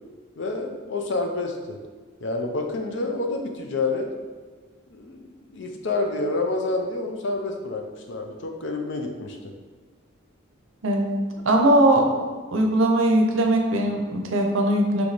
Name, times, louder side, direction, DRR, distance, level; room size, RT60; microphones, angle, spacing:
voice 1, 0.4-1.8 2.2-4.1 4.9-9.4, left 2 dB, 55° left, 3 dB, 0.5 m, -28 dB
voice 2, 10.8-12.1 12.5-15.1, right 1 dB, 70° right, 2 dB, 0.6 m, -20 dB
3.3 x 3.2 x 4.0 m, 1.4 s
head